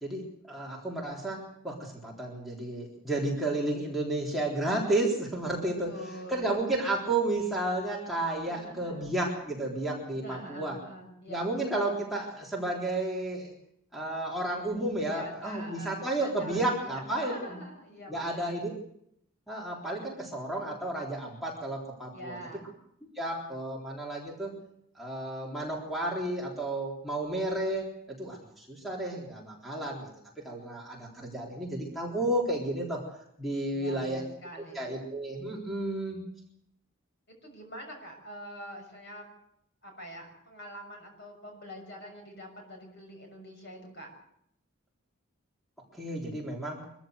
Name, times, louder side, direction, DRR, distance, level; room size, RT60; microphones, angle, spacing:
voice 1, 0.0-5.9 6.3-10.8 11.3-13.5 13.9-17.4 18.1-18.7 19.5-22.4 23.2-24.5 25.0-30.1 30.4-33.0 33.4-34.2 34.7-36.2 46.0-46.8, right 2 dB, ahead, -4 dB, 3.7 m, -32 dB
voice 2, 5.9-6.6 8.3-9.1 10.1-11.4 15.1-18.6 22.1-22.7 33.7-34.9 37.3-39.3 39.8-44.1, equal, 50° left, 2 dB, 6.6 m, -45 dB
24.0 x 14.5 x 8.0 m, 0.75 s
head